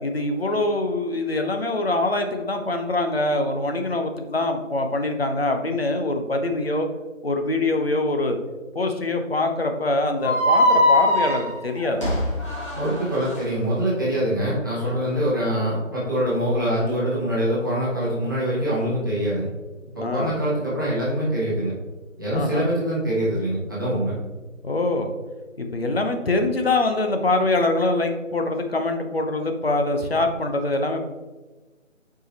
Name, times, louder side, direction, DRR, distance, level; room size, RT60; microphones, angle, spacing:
voice 1, 0.0-6.9 7.2-8.4 8.7-12.2 15.1-15.2 20.0-20.4 22.3-22.7 24.6-25.1 25.6-31.1, left 2 dB, 50° left, 5 dB, 0.9 m, -24 dB
sound 1, 10.2-13.4, left 1 dB, 20° left, 1.2 m, -21 dB
voice 2, 12.7-19.5 19.9-21.7 22.2-24.1, right 1 dB, 15° right, -10 dB, 1.1 m, -24 dB
8.9 x 4.8 x 2.9 m, 1.2 s
figure-of-eight pair, 160°, 40 cm